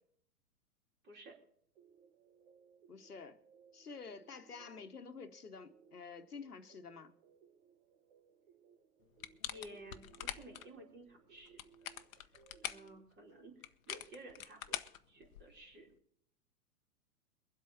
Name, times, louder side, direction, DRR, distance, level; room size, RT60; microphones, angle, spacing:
voice 1, 1.0-1.4 9.4-11.6 12.6-14.8 15.1-15.9, right 1 dB, 25° right, 4.4 m, -54 dB
sound 1, 1.8-13.0, right 7 dB, 45° right, 1.6 m, -65 dB
voice 2, 2.9-3.4 3.7-7.1, left 5 dB, 85° left, 1.4 m, -49 dB
sound 2, 9.2-10.7 11.4-12.9 13.6-15.6, left 10 dB, 60° left, 1.1 m, -44 dB
23.5 x 8.1 x 4.3 m
figure-of-eight pair, 110°, 45 cm